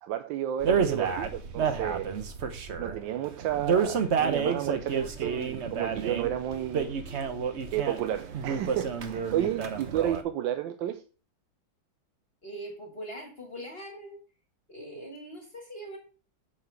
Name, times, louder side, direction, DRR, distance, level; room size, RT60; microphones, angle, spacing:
voice 1, 0.0-2.1 2.8-6.9 7.7-11.0, right 11 dB, 85° right, 1.4 m, -31 dB
sound 1, 0.6-10.2, right 6 dB, 50° right, 0.9 m, -30 dB
voice 2, 12.4-14.2 14.7-16.0, right 1 dB, 35° left, 1.6 m, -41 dB
7.6 x 5.7 x 4.6 m
omnidirectional pair, 2.0 m